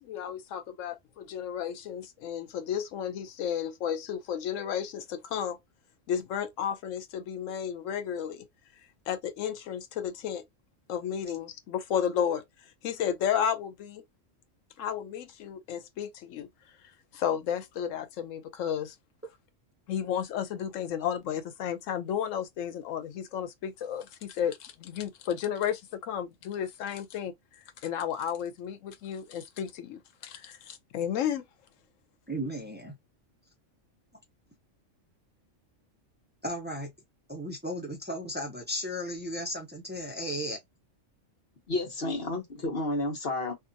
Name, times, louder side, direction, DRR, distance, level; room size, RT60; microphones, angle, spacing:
voice 1, 0.0-5.6 6.1-8.5 9.1-10.4 10.9-12.4 12.8-14.0 14.8-16.5 17.1-18.9 19.9-27.3 27.8-31.4, left 9 dB, 85° left, 1.0 m, -33 dB
voice 2, 32.3-33.0 36.4-36.9 37.3-40.6, equal, 15° right, 0.4 m, -35 dB
voice 3, 41.7-43.5, left 2 dB, 55° left, 1.1 m, -31 dB
2.8 x 2.3 x 2.5 m
omnidirectional pair, 1.3 m